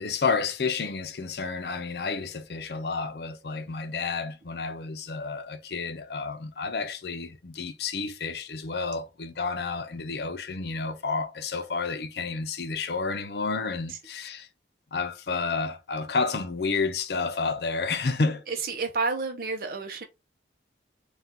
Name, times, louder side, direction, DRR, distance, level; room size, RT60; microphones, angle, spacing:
voice 1, 0.0-14.5 14.9-18.4, left 4 dB, 65° left, 0.6 m, -30 dB
voice 2, 18.5-20.0, right 4 dB, 55° right, 0.6 m, -30 dB
4.3 x 2.3 x 3.6 m
head